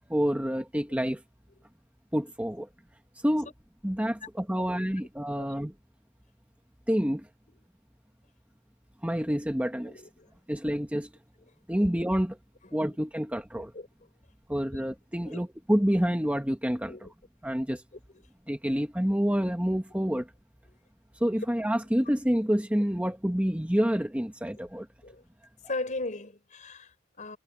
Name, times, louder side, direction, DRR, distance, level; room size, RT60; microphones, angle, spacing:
voice 1, 0.1-1.2 2.1-2.7 3.2-3.5 3.8-5.7 6.9-7.3 9.0-10.0 10.5-11.1 11.7-12.4 12.7-13.7 14.5-17.0 17.4-17.8 18.5-20.3 21.2-24.9, equal, 5° right, 1.5 m, -28 dB
voice 2, 9.8-10.3 13.7-13.9 14.7-14.8 15.2-15.4 16.9-17.1 18.1-18.2 24.5-24.6 25.0-25.2 25.7-27.4, left 2 dB, 40° left, 4.1 m, -38 dB
head